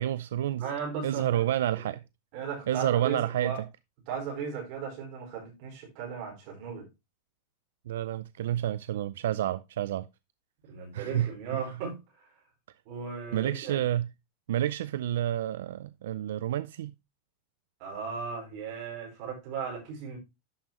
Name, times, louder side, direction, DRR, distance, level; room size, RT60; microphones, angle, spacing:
voice 1, 0.0-0.7 1.0-2.0 2.7-3.6 7.9-10.1 10.9-11.7 13.3-14.1 14.5-16.9, right 12 dB, 85° right, 0.4 m, -29 dB
voice 2, 0.6-1.4 1.7-1.8 2.3-3.6 4.1-6.9 10.7-12.0 12.8-13.8 17.8-20.2, right 6 dB, 40° right, 5.0 m, -36 dB
11.5 x 5.6 x 3.0 m
supercardioid pair, 175°, 0 cm